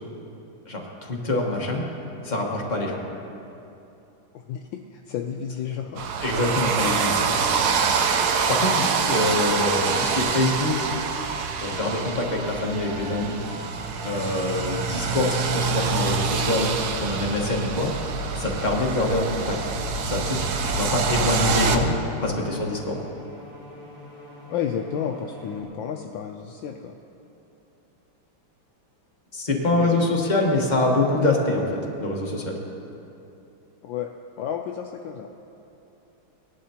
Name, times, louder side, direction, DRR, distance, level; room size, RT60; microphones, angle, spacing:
voice 1, 0.7-1.8 2.2-3.0 6.2-7.2 8.5-10.9 11.6-13.4 14.0-16.7 17.0-17.9 18.3-19.6 20.0-21.9 22.2-23.0 29.3-31.7 32.0-32.6, left 2 dB, 25° left, -1 dB, 1.0 m, -25 dB
voice 2, 4.9-6.1 19.0-19.1 21.2-21.7 24.5-27.0 29.6-30.2 33.8-34.1 34.4-35.3, left 8 dB, 75° left, 3 dB, 1.2 m, -32 dB
sound 1, 6.0-21.8, right 5 dB, 70° right, 1.0 m, -26 dB
sound 2, 9.6-16.9, right 2 dB, 40° right, 3.3 m, -42 dB
sound 3, 12.9-25.6, equal, 10° left, 2.9 m, -44 dB
19.0 x 11.0 x 2.9 m, 2.8 s
omnidirectional pair, 2.4 m